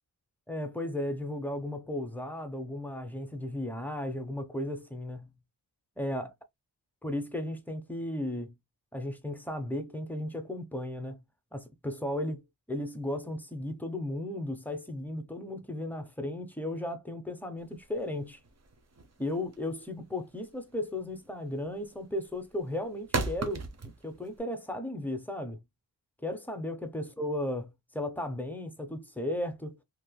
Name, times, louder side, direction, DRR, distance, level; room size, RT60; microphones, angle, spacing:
voice 1, 0.5-5.3 6.0-6.3 7.0-8.5 8.9-11.2 11.5-12.4 12.7-18.4 19.2-23.7 24.0-25.6 26.2-29.8, left 1 dB, 5° left, 0.7 m, -35 dB
sound 1, 17.6-24.4, right 3 dB, 40° right, 0.8 m, -37 dB
3.2 x 2.9 x 2.2 m
wide cardioid pair, 85°, 41 cm